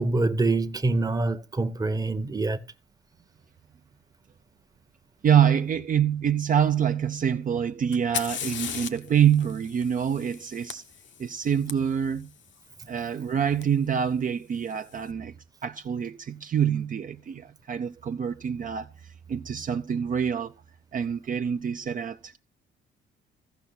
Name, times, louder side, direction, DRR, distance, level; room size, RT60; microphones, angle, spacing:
voice 1, 0.0-2.6, right 2 dB, 20° right, 0.9 m, -25 dB
voice 2, 5.2-10.8 11.2-12.3 12.9-15.3 15.6-20.5 20.9-22.4, right 8 dB, 45° right, 0.6 m, -26 dB
Fire, 7.9-11.7 13.6-13.7 14.5-15.0, left 8 dB, 70° left, 1.1 m, -37 dB
15.0 x 5.7 x 4.0 m
cardioid pair, 90°, 20 cm